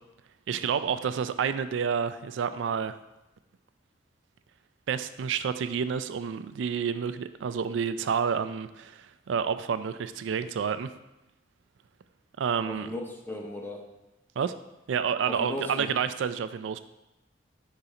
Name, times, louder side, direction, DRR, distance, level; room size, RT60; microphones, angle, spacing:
voice 1, 0.5-3.0 4.9-10.9 12.4-12.9 14.4-14.5 14.9-16.8, right 7 dB, 80° right, 12 dB, 0.4 m, -29 dB
voice 2, 12.7-13.9 15.3-15.9, left 1 dB, 10° left, 1 dB, 0.7 m, -36 dB
5.6 x 3.9 x 4.8 m, 0.96 s
head